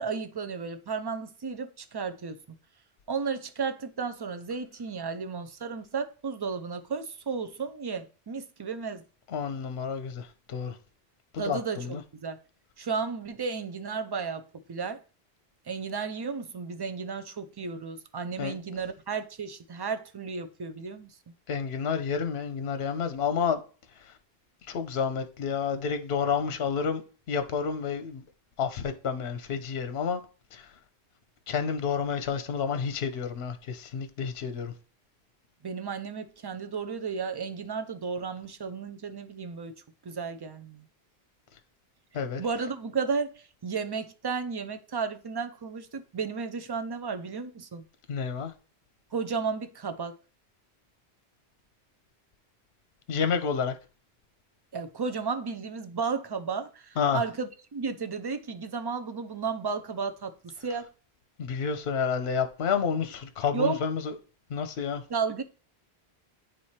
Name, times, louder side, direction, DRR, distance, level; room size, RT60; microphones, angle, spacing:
voice 1, 0.0-2.4 3.1-9.0 11.4-12.4 12.8-14.4 14.7-15.0 15.7-21.1 35.6-39.7 40.0-40.8 42.4-43.3 43.6-47.8 49.1-50.2 54.7-60.3 60.6-60.9 63.5-63.8 65.1-65.4, right 5 dB, 40° right, 0.3 m, -33 dB
voice 2, 9.3-10.8 11.3-12.0 18.4-18.5 21.5-23.6 24.7-27.0 27.3-28.2 28.6-30.2 30.5-30.7 31.5-34.7 42.1-42.4 48.1-48.5 53.1-53.7 57.0-57.2 61.4-64.1 64.5-65.0, left 6 dB, 75° left, 0.9 m, -29 dB
8.9 x 3.2 x 4.2 m
omnidirectional pair, 1.1 m